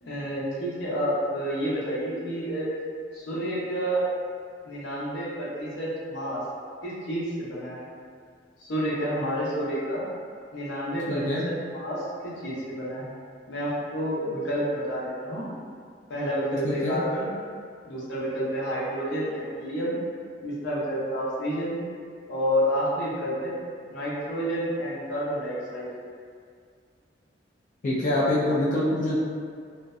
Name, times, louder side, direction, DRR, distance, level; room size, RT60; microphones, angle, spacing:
voice 1, 0.0-2.7 3.1-4.1 4.7-6.4 6.8-7.8 8.6-10.1 10.5-13.1 13.5-15.5 16.1-17.3 17.9-20.0 20.4-21.8 22.3-23.5 23.9-25.9, equal, 85° left, -7 dB, 0.7 m, -29 dB
voice 2, 11.1-11.4 16.6-17.0 27.8-29.2, left 1 dB, 40° left, -7 dB, 0.3 m, -25 dB
2.5 x 2.1 x 2.3 m, 2.1 s
head